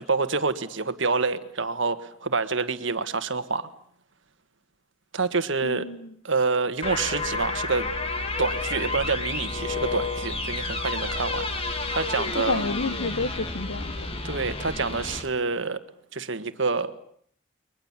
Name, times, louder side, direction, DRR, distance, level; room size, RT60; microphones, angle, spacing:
voice 1, 0.0-3.7 5.1-5.9 6.2-7.9 8.4-12.6 14.2-15.8 16.1-16.9, right 4 dB, 65° right, 1.6 m, -27 dB
voice 2, 5.6-6.1 12.3-13.9, left 3 dB, 70° left, 1.1 m, -30 dB
sound 1, 6.8-15.2, left 3 dB, 25° left, 2.1 m, -30 dB
30.0 x 23.0 x 7.4 m
head